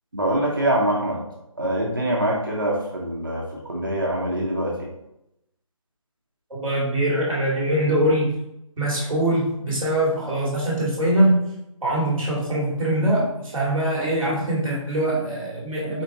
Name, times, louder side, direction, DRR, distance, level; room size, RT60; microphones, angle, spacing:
voice 1, 0.1-1.2 1.6-3.4 3.7-4.7, right 1 dB, 40° right, -3 dB, 0.7 m, -24 dB
voice 2, 6.5-8.3 8.8-11.4 11.8-16.0, right 1 dB, ahead, -24 dB, 0.9 m, -22 dB
4.3 x 4.1 x 2.7 m, 0.84 s
figure-of-eight pair, 180°, 18 cm